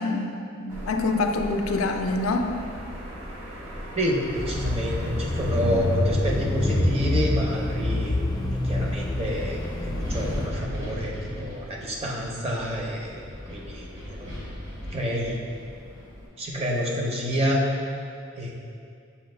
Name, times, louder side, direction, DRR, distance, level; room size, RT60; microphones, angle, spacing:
voice 1, 0.0-2.5 5.6-5.9, left 3 dB, 85° left, 5 dB, 0.4 m, -26 dB
sound 1, 0.7-6.0, equal, 80° right, 0.9 m, -38 dB
voice 2, 4.0-8.2 8.6-13.2 13.5-14.3 14.9-15.4 16.4-17.6 18.4-18.5, equal, 30° right, -2 dB, 0.6 m, -28 dB
Bicycle / Mechanisms, 4.3-10.5, left 1 dB, 20° left, 0.4 m, -27 dB
Wind, 8.9-16.3, left 1 dB, 60° right, 1.0 m, -38 dB
6.8 x 2.4 x 3.2 m, 2.4 s
head